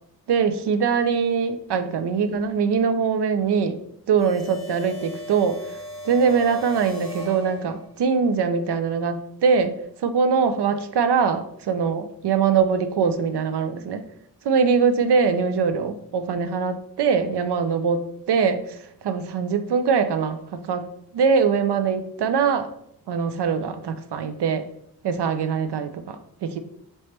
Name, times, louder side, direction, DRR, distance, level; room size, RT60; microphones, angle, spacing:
voice 1, 0.3-3.8 4.1-5.6 6.0-14.0 14.4-22.7 23.1-24.7 25.0-26.6, right 6 dB, 80° right, 10 dB, 0.5 m, -22 dB
sound 1, 4.2-8.1, equal, 60° right, 1.3 m, -38 dB
3.2 x 3.0 x 4.3 m, 0.72 s
cardioid pair, 50°, 40 cm